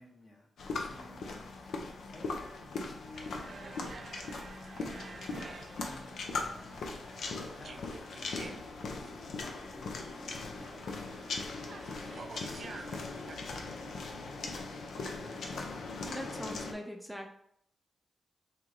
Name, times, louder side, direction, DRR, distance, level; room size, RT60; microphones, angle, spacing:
voice 1, 0.0-1.7 2.1-4.2 5.8-6.2 7.5-8.2 8.9-11.1 11.7-14.8, left 1 dB, 60° left, -3 dB, 1.3 m, -55 dB
sound 1, 0.6-16.7, left 3 dB, 75° left, 0.5 m, -40 dB
sound 2, 3.1-13.4, right 4 dB, 60° right, 0.3 m, -50 dB
voice 2, 16.1-17.3, equal, 5° right, 3 dB, 0.6 m, -41 dB
3.1 x 2.7 x 3.7 m, 0.71 s
supercardioid pair, 45°, 0 cm